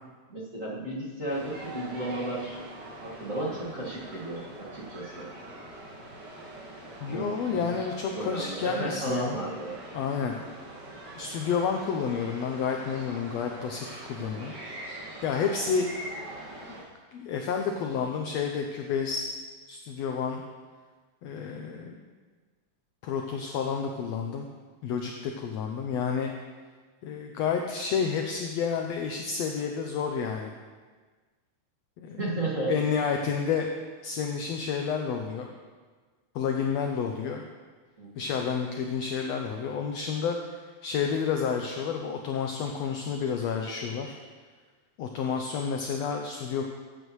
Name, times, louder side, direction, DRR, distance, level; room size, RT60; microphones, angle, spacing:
voice 1, 0.3-2.6 3.0-5.3 7.0-7.8 8.1-9.7 14.2-14.5 21.5-21.8 32.2-32.8 38.0-38.3, right 2 dB, 30° right, -8 dB, 1.7 m, -34 dB
sound 1, 1.3-16.8, right 1 dB, 85° right, 3.6 m, -43 dB
voice 2, 7.0-9.4 9.9-10.4 11.2-14.5 15.2-16.1 16.7-16.8 17.1-19.3 19.7-20.4 21.2-22.0 23.0-24.5 24.8-26.3 27.0-30.5 32.0-32.2 32.7-33.7 34.0-35.5 36.3-37.4 38.2-44.2 45.0-46.6, left 6 dB, 80° left, 3 dB, 1.5 m, -30 dB
14.0 x 8.3 x 3.1 m, 1.4 s
omnidirectional pair, 3.6 m